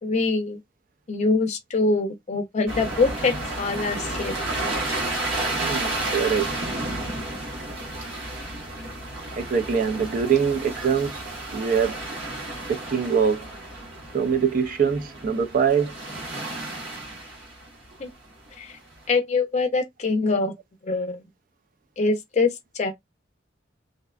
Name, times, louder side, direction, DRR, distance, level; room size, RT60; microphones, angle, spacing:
voice 1, 0.0-0.6 1.1-4.3 18.0-18.1 18.6-18.8 19.1-20.5 20.8-21.2 22.0-22.9, left 3 dB, 40° left, 0.5 m, -24 dB
sound 1, 2.7-18.0 18.7-18.9, right 2 dB, 80° right, 1.1 m, -32 dB
voice 2, 5.5-6.5 9.4-11.2 11.5-12.1 12.7-13.5 14.1-16.0, right 6 dB, 45° right, 0.4 m, -23 dB
2.6 x 2.1 x 2.3 m
head